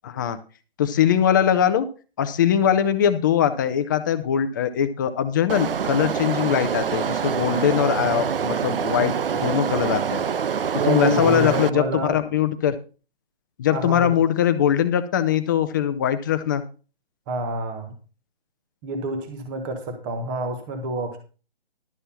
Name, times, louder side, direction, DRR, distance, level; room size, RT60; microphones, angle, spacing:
voice 1, 0.0-0.4 0.8-1.9 2.2-9.1 9.4-10.2 10.9-12.8 13.6-16.6, left 9 dB, 20° left, 11 dB, 0.7 m, -21 dB
sound 1, 5.5-11.7, right 7 dB, 65° right, 0.7 m, -25 dB
voice 2, 10.8-12.2 13.7-14.2 17.3-17.9 18.8-21.2, right 2 dB, 20° right, 6 dB, 1.6 m, -27 dB
12.0 x 6.6 x 5.7 m, 0.35 s
figure-of-eight pair, 150°, 30 cm